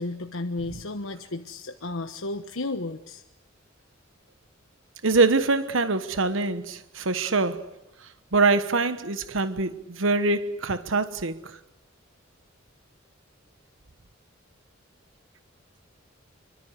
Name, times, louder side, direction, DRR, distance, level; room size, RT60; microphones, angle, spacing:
voice 1, 0.0-3.2, left 2 dB, 85° left, 1.3 m, -33 dB
voice 2, 5.0-7.6 8.3-11.4, right 3 dB, 75° right, 1.3 m, -24 dB
26.5 x 24.5 x 8.2 m
head